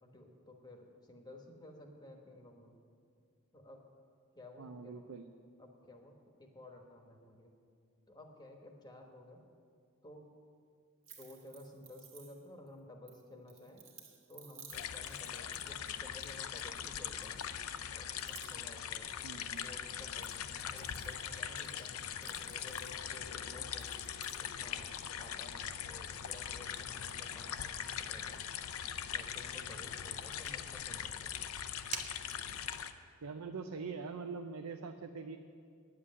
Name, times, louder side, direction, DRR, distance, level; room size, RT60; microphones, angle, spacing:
voice 1, 0.0-2.8 3.5-3.8 4.3-5.2 5.6-7.5 8.1-9.4 10.0-10.3 11.2-13.9 14.3-17.4 17.9-20.4 20.7-23.9 24.4-24.9 25.2-28.4 29.1-31.4, left 1 dB, 20° left, 2 dB, 1.1 m, -54 dB
voice 2, 4.6-5.3 19.2-19.7 32.5-32.6 33.2-35.4, right 4 dB, 90° right, 6 dB, 0.6 m, -43 dB
sound 1, 11.0-12.7 13.1-16.9 17.2-17.8 18.1-19.7 20.0-23.3 23.7-24.5, right 7 dB, 65° right, 1.6 m, -57 dB
sound 2, 14.7-32.9, left 9 dB, 80° left, 0.6 m, -41 dB
Fire, 26.0-32.8, right 6 dB, 35° right, 0.6 m, -52 dB
9.8 x 7.7 x 9.5 m, 2.3 s
head